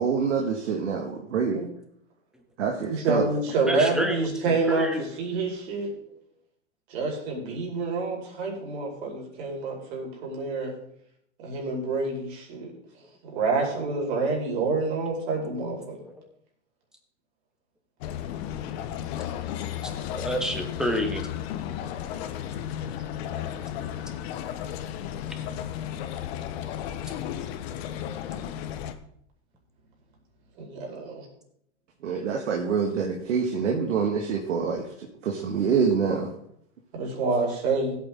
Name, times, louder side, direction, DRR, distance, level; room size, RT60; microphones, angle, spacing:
voice 1, 0.0-1.6 2.6-3.3 32.0-36.3, right 6 dB, 75° right, 1 dB, 1.9 m, -26 dB
voice 2, 2.9-5.9 6.9-10.7 11.4-12.7 13.2-16.0 30.6-31.2 36.9-37.9, right 3 dB, 60° right, 0 dB, 4.9 m, -27 dB
voice 3, 3.7-5.1 15.6-16.3 19.8-21.3, equal, ahead, 4 dB, 2.0 m, -30 dB
sound 1, 18.0-28.9, left 10 dB, 55° left, 1.2 m, -34 dB
16.0 x 8.5 x 3.7 m, 0.71 s
hypercardioid pair, 105°, 37 cm